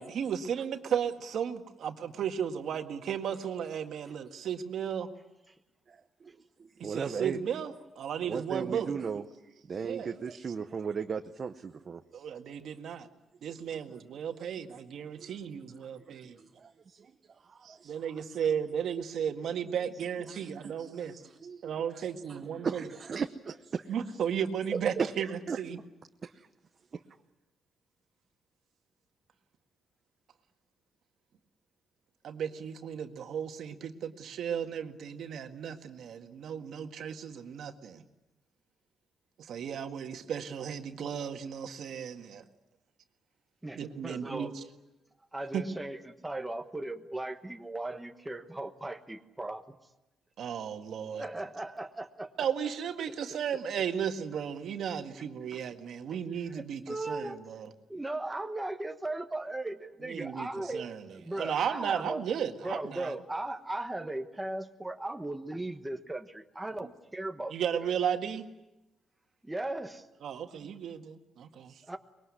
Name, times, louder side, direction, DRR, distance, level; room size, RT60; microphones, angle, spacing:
voice 1, 0.0-5.1 6.8-8.9 9.8-10.1 12.1-13.1 13.4-16.4 17.6-21.1 21.6-22.9 23.9-25.8 32.2-38.0 39.4-42.4 43.8-44.6 45.5-45.7 50.4-51.3 52.4-57.7 60.0-63.1 67.5-68.5 70.2-71.7, right 8 dB, 65° right, 6 dB, 1.8 m, -35 dB
voice 2, 5.9-7.4 8.2-12.3 13.7-13.9 14.4-14.5 15.2-15.4 16.1-18.5 20.3-21.6 21.9-24.0 24.7-25.1 25.5-25.6 26.2-26.5 26.9-27.0 70.6-70.8, right 6 dB, 35° right, 6 dB, 0.9 m, -38 dB
voice 3, 43.6-44.5 45.3-49.7 51.2-52.3 55.5-55.6 56.1-56.2 56.5-57.4 57.9-62.2 62.6-67.6 67.8-67.9 69.4-70.1 71.9-72.0, right 2 dB, 10° right, 5 dB, 1.2 m, -37 dB
24.5 x 21.5 x 9.8 m, 0.99 s
cardioid pair, 145°, 0 cm